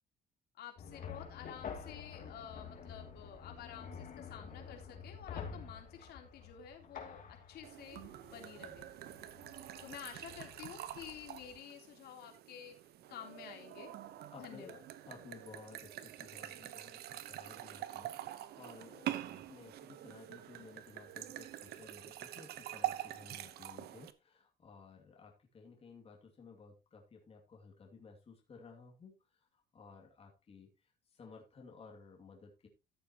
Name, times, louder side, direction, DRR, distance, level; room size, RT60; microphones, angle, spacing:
voice 1, 0.6-8.0 8.3-8.9 9.8-12.8 13.1-13.9 14.4-14.8, left 9 dB, 75° left, 3 dB, 3.4 m, -50 dB
sound 1, 0.8-11.6, left 6 dB, 55° left, 2.7 m, -49 dB
sound 2, 7.6-24.1, right 13 dB, 70° right, 1.0 m, -45 dB
voice 2, 14.3-32.7, left 4 dB, 35° left, 0 dB, 2.5 m, -56 dB
14.5 x 7.6 x 3.0 m, 0.25 s
cardioid pair, 110°, 17 cm